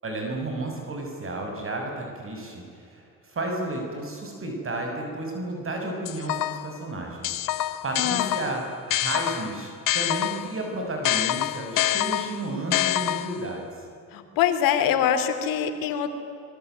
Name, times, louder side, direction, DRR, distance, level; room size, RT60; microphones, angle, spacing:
voice 1, 0.0-7.4 7.8-13.7, right 2 dB, 40° right, 2 dB, 6.5 m, -32 dB
sound 1, 6.1-6.8 7.2-10.6 11.0-13.5, left 14 dB, 75° left, 1.2 m, -26 dB
voice 2, 8.0-8.4 14.1-16.1, left 9 dB, 90° left, 8 dB, 3.0 m, -24 dB
25.5 x 23.0 x 9.4 m, 2.6 s
cardioid pair, 95°, 33 cm